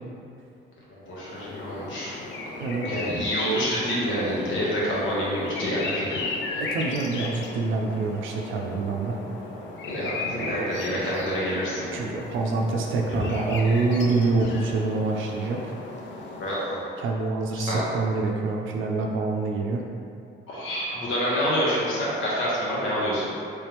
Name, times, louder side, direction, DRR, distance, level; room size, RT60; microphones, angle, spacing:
voice 1, 1.1-2.1 2.8-6.2 6.5-6.6 9.8-11.9 13.1-13.2 16.4-16.8 17.6-17.8 20.5-23.3, equal, 85° left, -6 dB, 1.1 m, -27 dB
sound 1, 1.1-17.0, left 3 dB, 70° left, 0.5 m, -36 dB
voice 2, 2.6-2.9 6.6-9.2 10.2-10.5 10.9-11.1 11.9-15.7 17.0-19.8, right 3 dB, 85° right, 1 dB, 0.4 m, -26 dB
3.4 x 3.3 x 3.0 m, 2.5 s
cardioid pair, 90°, 20 cm